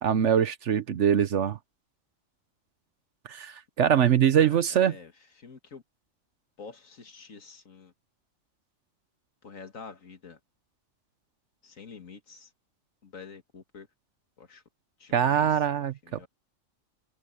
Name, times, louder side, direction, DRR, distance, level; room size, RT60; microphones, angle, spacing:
voice 1, 0.0-1.6 3.3-4.9 15.1-15.9, right 9 dB, 65° right, 1.1 m, -23 dB
voice 2, 3.9-5.1 5.4-5.8 6.6-7.9 9.4-10.4 11.6-12.5 13.0-13.9 14.4-14.6 15.0-16.3, left 5 dB, 85° left, 2.3 m, -47 dB
omnidirectional pair, 1.4 m